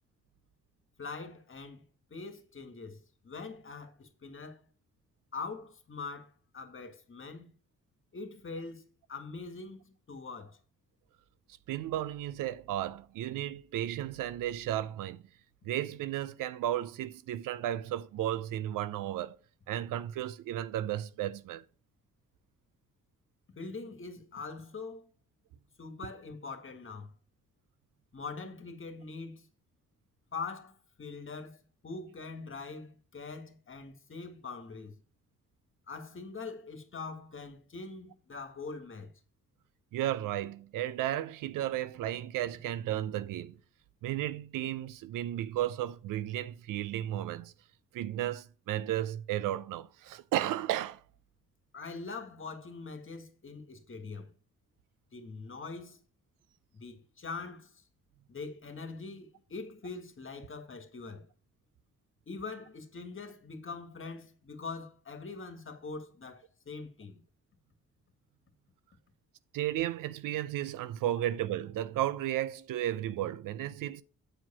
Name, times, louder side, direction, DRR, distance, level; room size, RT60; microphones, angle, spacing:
voice 1, 1.0-1.8 2.1-4.6 5.3-7.5 8.1-10.6 23.6-25.1 25.8-27.1 28.1-29.5 30.3-35.0 35.9-39.1 51.7-54.3 55.1-56.0 56.7-57.8 58.3-61.3 62.3-67.2, left 4 dB, 40° left, 1.7 m, -43 dB
voice 2, 11.7-15.2 15.6-19.4 19.7-21.6 39.9-43.6 44.0-47.5 47.9-51.0 69.5-74.0, right 12 dB, 85° right, 0.6 m, -34 dB
8.0 x 4.7 x 5.5 m
cardioid pair, 65°, 31 cm